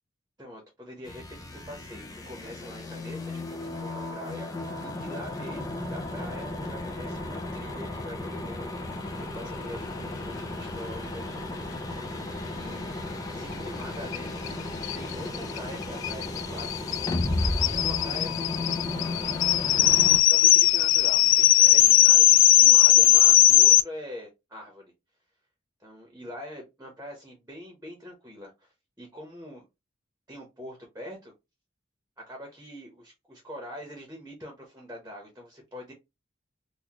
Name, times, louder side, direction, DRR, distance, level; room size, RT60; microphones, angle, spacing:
voice 1, 0.4-11.4 12.5-16.7 17.6-18.6 19.7-24.9 25.8-28.7 29.0-29.7 30.3-31.3 32.2-35.9, left 1 dB, 15° right, 0 dB, 1.0 m, -43 dB
sound 1, 1.0-20.2, left 2 dB, 20° left, 0.6 m, -34 dB
sound 2, 14.1-14.2 14.5-14.6 14.8-23.8, left 14 dB, 80° left, 0.3 m, -19 dB
4.2 x 2.4 x 2.9 m, 0.22 s
head